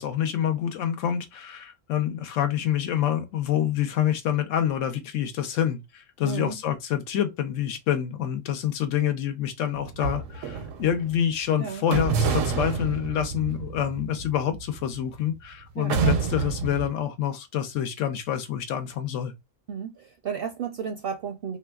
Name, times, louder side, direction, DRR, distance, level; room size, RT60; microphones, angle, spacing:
voice 1, 0.0-19.3, left 10 dB, 80° left, 0.9 m, -27 dB
voice 2, 6.2-6.6 11.6-11.8 15.8-16.2 19.7-21.6, right 7 dB, 65° right, 0.6 m, -33 dB
sound 1, 9.7-11.2 11.9-15.3 15.9-16.9, right 5 dB, 85° right, 1.0 m, -28 dB
3.3 x 2.7 x 2.3 m
omnidirectional pair, 1.3 m